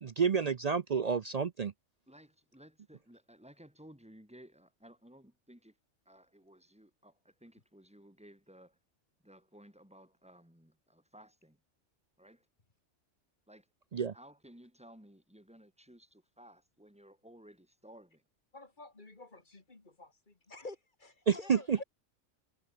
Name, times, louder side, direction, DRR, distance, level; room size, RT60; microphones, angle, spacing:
voice 1, 0.0-1.7 13.9-14.1 21.3-21.8, right 6 dB, 50° right, 0.5 m, -29 dB
voice 2, 2.1-5.8 6.0-8.8 9.2-11.6 12.2-12.5 13.5-13.7 14.1-18.2 21.7-21.8, right 1 dB, 5° right, 4.6 m, -57 dB
voice 3, 18.5-21.8, left 2 dB, 40° left, 2.6 m, -49 dB
omnidirectional pair, 1.3 m